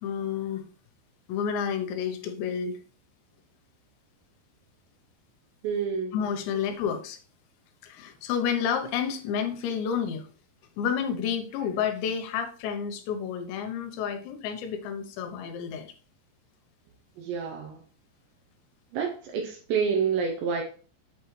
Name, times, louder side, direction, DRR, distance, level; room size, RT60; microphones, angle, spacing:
voice 1, 0.0-0.7 1.3-2.8 6.1-7.2 7.8-10.3 10.8-15.9, left 7 dB, 80° left, 6 dB, 3.0 m, -30 dB
voice 2, 5.6-6.1 17.2-17.8 18.9-20.6, right 6 dB, 80° right, 2 dB, 3.0 m, -28 dB
8.2 x 4.6 x 3.1 m, 0.40 s
omnidirectional pair, 5.3 m